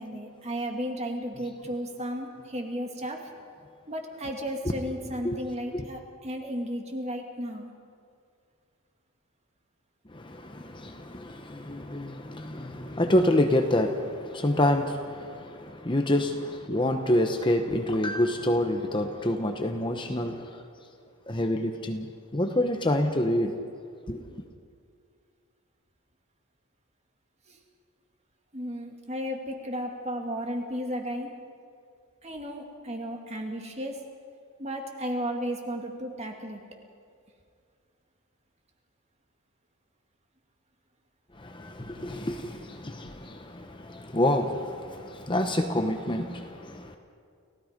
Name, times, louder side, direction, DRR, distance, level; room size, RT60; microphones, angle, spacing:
voice 1, 0.0-3.2 3.9-7.7 27.5-27.6 28.5-31.3 32.2-34.0 34.6-36.6, equal, 30° right, 2 dB, 2.3 m, -34 dB
voice 2, 10.1-20.6 21.3-22.1 22.3-23.5 24.1-24.4 41.3-47.0, left 1 dB, 20° left, 5 dB, 0.9 m, -27 dB
30.0 x 16.5 x 5.2 m, 2.3 s
head